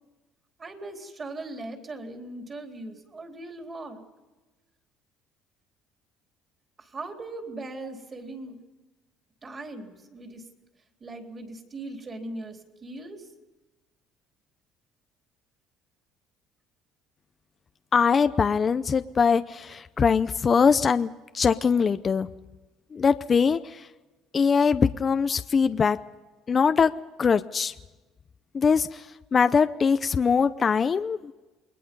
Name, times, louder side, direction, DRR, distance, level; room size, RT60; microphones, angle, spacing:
voice 1, 0.6-4.0 6.8-8.6 9.4-10.4 11.0-13.2, right 2 dB, 25° right, 3 dB, 3.8 m, -39 dB
voice 2, 17.9-22.3 22.9-23.9 24.3-26.0 26.5-26.9 27.2-27.7 28.5-31.3, left 6 dB, 30° left, 11 dB, 0.6 m, -22 dB
29.0 x 21.5 x 5.5 m, 1.1 s
cardioid pair, 120°, 0 cm